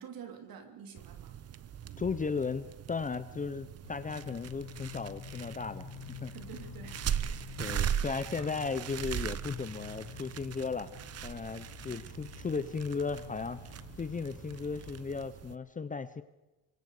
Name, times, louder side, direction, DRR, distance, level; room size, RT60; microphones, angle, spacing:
voice 1, 0.0-1.4 6.3-7.0 11.9-12.1, right 7 dB, 60° right, 5 dB, 3.3 m, -48 dB
sound 1, 1.0-15.5, right 9 dB, 35° right, 0.9 m, -40 dB
voice 2, 2.0-5.9 6.2-6.3 7.6-10.9 11.2-13.6 14.0-16.2, left 5 dB, 20° left, 12 dB, 0.8 m, -36 dB
sound 2, 3.8-15.0, left 10 dB, 85° left, 4.6 m, -49 dB
26.0 x 24.0 x 5.0 m, 1.1 s
cardioid pair, 125°, 41 cm